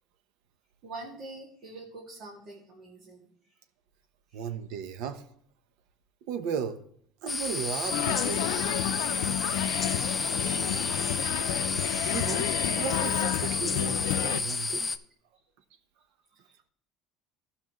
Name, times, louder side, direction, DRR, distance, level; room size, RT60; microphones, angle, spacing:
voice 1, 0.8-3.3 4.3-4.5 10.3-11.0 13.2-13.3 16.3-16.7, right 2 dB, 50° right, -4 dB, 2.1 m, -45 dB
voice 2, 4.3-5.3 6.2-6.8 7.2-8.8 12.1-14.9, right 7 dB, 75° right, 10 dB, 0.8 m, -36 dB
sound 1, 7.3-15.0, left 3 dB, 15° left, 0.5 m, -31 dB
sound 2, 7.9-14.4, left 14 dB, 85° left, 0.4 m, -31 dB
15.0 x 5.7 x 3.1 m, 0.65 s
cardioid pair, 135°, 0 cm